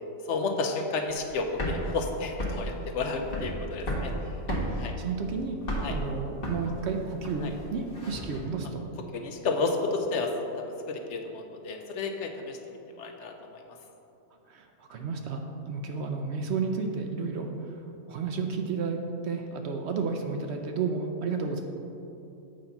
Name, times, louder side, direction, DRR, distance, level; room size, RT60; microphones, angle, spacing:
voice 1, 0.3-4.3 4.8-4.9 5.8-6.0 7.4-7.5 9.1-10.3 10.9-13.6, left 3 dB, 65° left, 4 dB, 0.9 m, -31 dB
sound 1, 1.2-8.4, equal, 45° left, 1.3 m, -33 dB
voice 2, 4.5-5.6 5.9-8.9 14.5-15.4 15.7-17.7 18.1-21.6, right 5 dB, 65° right, 4 dB, 0.8 m, -32 dB
7.8 x 4.1 x 5.7 m, 2.9 s
omnidirectional pair, 1.4 m